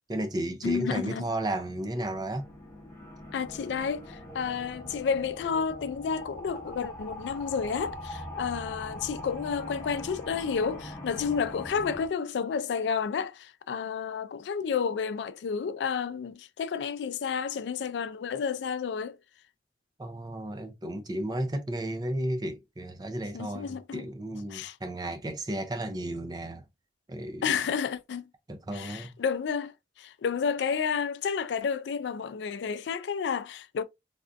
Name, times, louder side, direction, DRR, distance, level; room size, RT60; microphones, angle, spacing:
voice 1, 0.1-2.5 20.0-26.6 27.1-27.6 28.5-29.1, right 1 dB, 20° right, 0.5 m, -33 dB
voice 2, 0.6-1.2 3.3-19.2 23.3-24.0 24.5-24.8 27.4-28.3 28.7-33.8, left 6 dB, 80° left, 0.3 m, -31 dB
sound 1, 1.6-12.1, left 1 dB, 15° left, 0.7 m, -42 dB
3.4 x 2.5 x 2.5 m
head